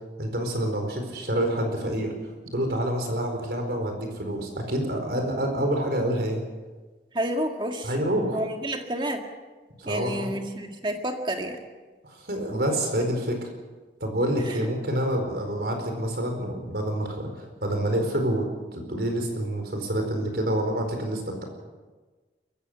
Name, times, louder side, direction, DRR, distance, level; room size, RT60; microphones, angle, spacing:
voice 1, 0.2-2.1 2.5-6.4 7.8-8.4 9.8-10.3 12.0-13.5 14.0-21.4, right 1 dB, 65° right, 4 dB, 4.6 m, -27 dB
voice 2, 7.1-7.9 8.3-9.2 9.9-11.6 14.4-14.6, right 1 dB, 25° right, 4 dB, 2.0 m, -29 dB
22.0 x 15.5 x 8.0 m, 1.3 s
head